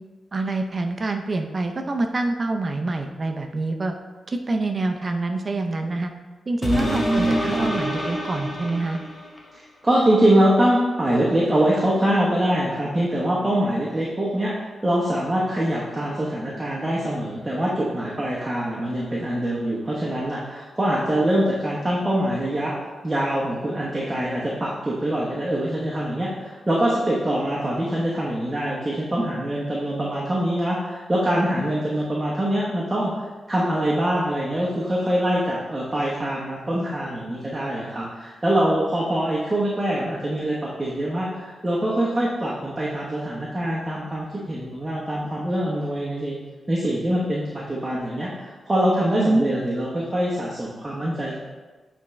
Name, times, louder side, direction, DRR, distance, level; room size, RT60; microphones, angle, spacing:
voice 1, 0.3-3.9 4.3-6.1 6.5-9.0 49.2-49.4, right 2 dB, 35° right, 5 dB, 0.5 m, -26 dB
sound 1, 6.6-9.5 10.1-10.2, equal, 25° left, 0.9 m, -28 dB
voice 2, 6.6-7.7 9.8-14.5 14.8-22.8 23.0-33.1 33.5-46.3 46.7-51.3, right 1 dB, 15° right, -6 dB, 1.0 m, -24 dB
8.3 x 3.5 x 3.2 m, 1.3 s
wide cardioid pair, 115°, 0 cm